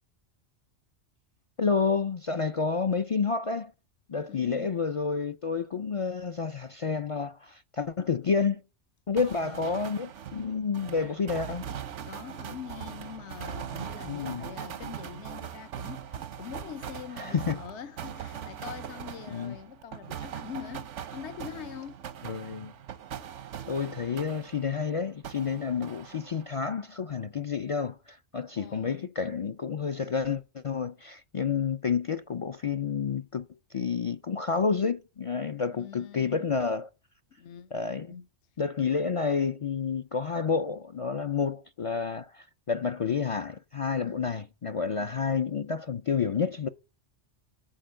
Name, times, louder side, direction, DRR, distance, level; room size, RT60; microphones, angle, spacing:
voice 1, 1.6-3.7 4.1-8.6 9.1-11.6 14.0-14.4 17.2-17.6 19.3-19.6 22.2-22.7 23.7-36.9 37.7-38.1 38.6-46.7, left 5 dB, 55° left, 0.3 m, -29 dB
voice 2, 4.3-4.8 9.2-9.7 12.0-22.0 28.5-29.1 35.7-36.5 37.4-37.7 38.1-38.3 44.0-44.2, left 9 dB, 75° left, 1.1 m, -44 dB
sound 1, 9.2-24.9 25.2-26.6, right 9 dB, 90° right, 1.1 m, -41 dB
8.8 x 4.4 x 7.5 m
omnidirectional pair, 1.2 m